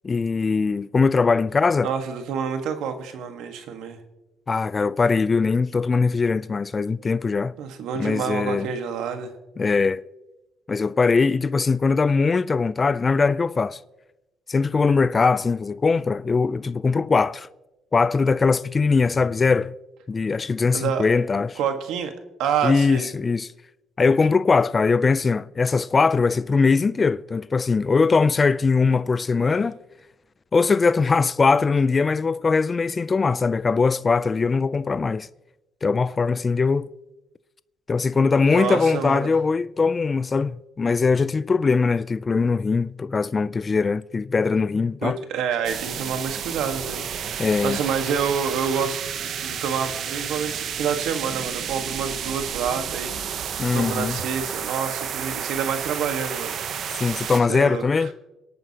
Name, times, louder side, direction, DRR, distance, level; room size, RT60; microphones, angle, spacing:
voice 1, 0.0-1.9 4.5-7.5 8.0-8.7 9.6-10.0 10.7-13.8 14.5-17.5 17.9-19.7 20.1-21.6 22.6-23.5 24.0-29.7 30.5-35.3 35.8-36.9 37.9-45.2 47.4-47.8 53.6-54.2 57.0-58.1, left 4 dB, 30° left, 0.3 m, -21 dB
voice 2, 1.8-4.0 7.6-9.3 20.7-21.1 21.6-22.1 22.4-23.1 29.4-29.5 38.5-39.3 45.0-56.5 57.5-58.1, right 7 dB, 85° right, 1.5 m, -28 dB
sound 1, 45.6-57.4, right 8 dB, 65° right, 0.8 m, -31 dB
26.0 x 9.0 x 2.9 m
cardioid pair, 100°, 0 cm